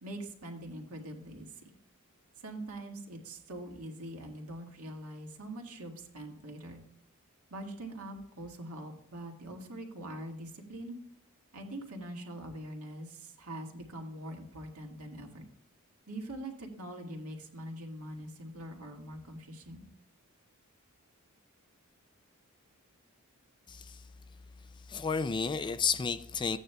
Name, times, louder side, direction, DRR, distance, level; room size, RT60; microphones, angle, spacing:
voice 1, 0.0-1.5 2.4-6.8 7.5-11.0 11.5-15.4 16.1-19.8, right 1 dB, 75° right, 1.9 m, -43 dB
voice 2, 23.7-24.1 24.7-26.6, left 5 dB, 20° left, 0.3 m, -32 dB
15.0 x 9.1 x 2.3 m
head